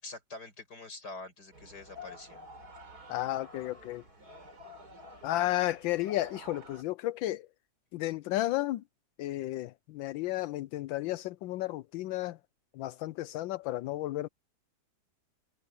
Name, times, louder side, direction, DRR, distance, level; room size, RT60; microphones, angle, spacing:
voice 1, 0.0-2.4, left 3 dB, 55° left, 6.7 m, -45 dB
sound 1, 1.5-6.8, left 2 dB, 50° right, 4.8 m, -50 dB
voice 2, 3.1-4.0 5.2-7.5 7.9-8.8 9.2-12.4 12.7-14.3, left 16 dB, 80° left, 1.3 m, -33 dB
omnidirectional pair, 2.1 m